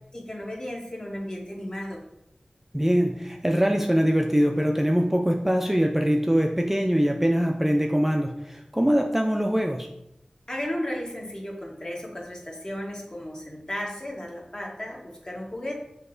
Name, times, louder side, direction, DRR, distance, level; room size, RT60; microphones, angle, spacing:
voice 1, 0.1-2.0 10.5-15.7, left 1 dB, 35° left, -1 dB, 1.0 m, -34 dB
voice 2, 2.7-9.9, equal, 10° right, 2 dB, 0.3 m, -23 dB
5.8 x 2.8 x 2.6 m, 0.82 s
wide cardioid pair, 55°, 2 cm